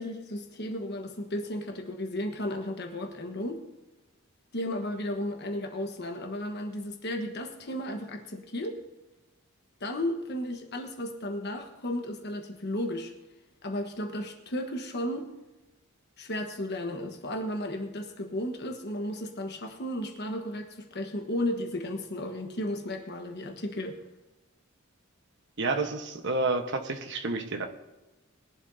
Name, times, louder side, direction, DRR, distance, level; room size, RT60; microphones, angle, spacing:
voice 1, 0.0-3.6 4.5-8.8 9.8-13.1 13.6-15.3 16.2-24.0, left 1 dB, 50° left, 3 dB, 1.3 m, -34 dB
voice 2, 25.6-27.7, right 3 dB, 55° right, 6 dB, 1.2 m, -29 dB
21.0 x 11.5 x 2.7 m, 1.1 s
head